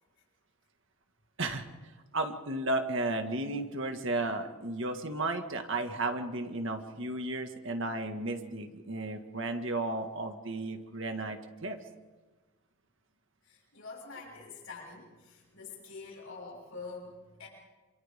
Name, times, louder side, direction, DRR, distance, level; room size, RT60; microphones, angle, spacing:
voice 1, 2.1-11.8, right 2 dB, 55° right, 5 dB, 1.9 m, -34 dB
voice 2, 13.4-17.5, left 4 dB, 65° left, -2 dB, 6.6 m, -46 dB
28.0 x 27.5 x 3.7 m, 1.3 s
head